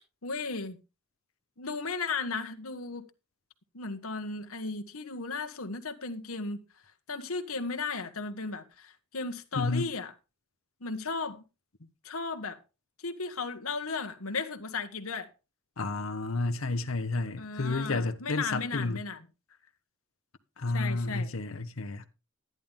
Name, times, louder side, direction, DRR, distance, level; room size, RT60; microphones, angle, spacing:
voice 1, 0.2-0.8 1.6-3.0 3.7-6.6 7.1-10.1 10.8-11.4 12.0-12.6 13.0-15.3 17.4-19.2 20.7-21.3, left 4 dB, 90° left, 1.6 m, -35 dB
voice 2, 9.5-9.9 15.8-19.0 20.6-22.1, left 3 dB, 75° left, 0.9 m, -31 dB
12.0 x 11.0 x 3.6 m
head